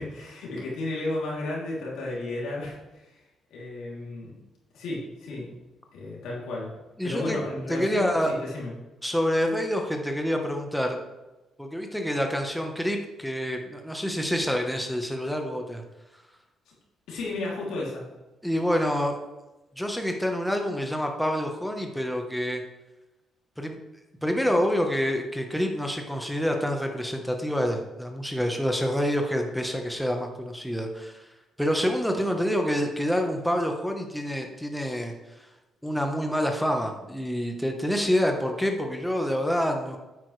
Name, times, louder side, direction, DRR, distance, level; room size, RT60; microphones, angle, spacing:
voice 1, 0.0-3.2 3.5-4.3 4.7-5.5 5.9-8.7 16.7-16.8 17.1-18.0, left 2 dB, 85° left, -4 dB, 3.1 m, -33 dB
voice 2, 7.0-7.4 7.7-8.3 9.0-11.0 11.6-15.8 18.4-19.2 19.8-22.6 23.6-23.8 24.2-31.2 31.6-35.5 35.8-40.0, equal, ahead, 3 dB, 1.2 m, -27 dB
8.9 x 8.6 x 3.3 m, 1.0 s
cardioid pair, 90°, 0 cm